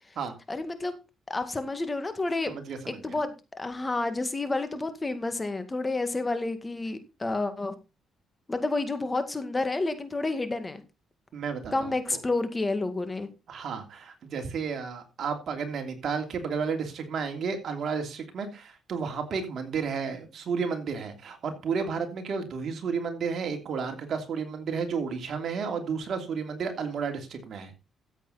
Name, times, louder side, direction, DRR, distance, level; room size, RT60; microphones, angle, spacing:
voice 1, 0.5-1.0 1.3-2.5 2.9-7.7 8.5-10.8 11.7-13.3, left 2 dB, 20° left, 9 dB, 2.0 m, -30 dB
voice 2, 2.5-3.1 11.3-12.2 13.5-27.7, right 5 dB, 60° right, 5 dB, 3.0 m, -32 dB
14.0 x 8.2 x 4.2 m, 0.28 s
cardioid pair, 90°, 0 cm